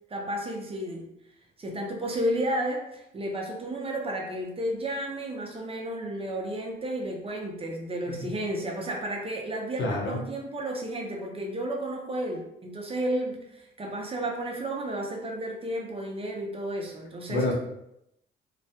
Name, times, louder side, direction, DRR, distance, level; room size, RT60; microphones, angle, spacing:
voice 1, 0.1-1.1 1.6-17.4, right 1 dB, 30° right, 1 dB, 0.5 m, -32 dB
voice 2, 9.8-10.2 17.3-17.5, left 2 dB, 75° left, -3 dB, 0.8 m, -28 dB
2.3 x 2.1 x 2.7 m, 0.81 s
cardioid pair, 90°, 20 cm